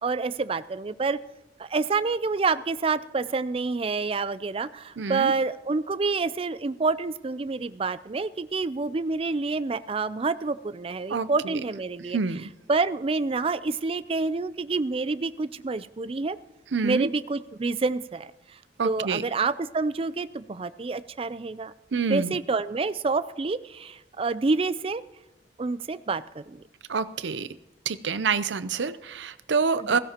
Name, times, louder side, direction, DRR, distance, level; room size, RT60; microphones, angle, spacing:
voice 1, 0.0-1.2 1.6-12.2 12.7-16.4 16.8-18.6 18.8-21.7 22.1-25.0 25.6-26.6 29.7-30.0, right 4 dB, 30° right, 15 dB, 0.4 m, -28 dB
voice 2, 5.0-5.3 11.1-11.5 12.1-12.4 16.7-17.1 18.8-19.2 21.9-22.4 26.9-27.5 27.9-30.0, right 5 dB, 85° right, 14 dB, 0.6 m, -27 dB
16.0 x 16.0 x 3.0 m, 1.0 s
head